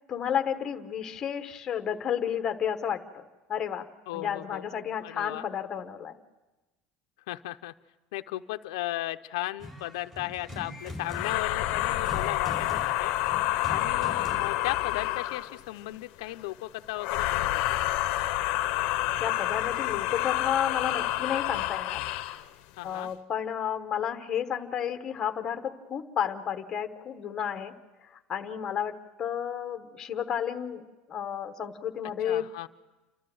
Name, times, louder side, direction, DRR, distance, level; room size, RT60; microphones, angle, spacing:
voice 1, 0.1-3.2 3.5-3.9 4.1-6.2 19.2-22.0 22.8-27.7 28.3-30.8 31.1-32.7, left 8 dB, 20° left, 7 dB, 1.0 m, -32 dB
voice 2, 4.1-5.5 7.3-7.7 8.1-13.1 13.7-17.8 22.8-23.1 32.2-32.7, left 17 dB, 90° left, 9 dB, 0.6 m, -36 dB
sound 1, 9.6-14.8, left 2 dB, 15° right, 4.2 m, -42 dB
sound 2, 11.0-15.6 17.0-22.4, left 15 dB, 50° left, 0.8 m, -28 dB
29.0 x 13.0 x 7.7 m, 1.1 s
cardioid pair, 180°, 3 cm